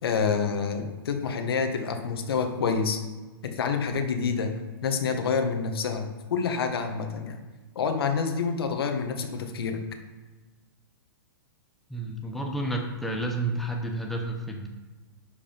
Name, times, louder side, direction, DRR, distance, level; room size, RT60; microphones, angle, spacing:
voice 1, 0.0-3.0 3.4-4.5 4.8-7.4 7.7-9.8, left 5 dB, 80° left, 5 dB, 1.6 m, -27 dB
voice 2, 11.9-14.7, right 1 dB, ahead, 1 dB, 0.7 m, -30 dB
11.5 x 5.3 x 5.2 m, 1.3 s
hypercardioid pair, 155°, 13 cm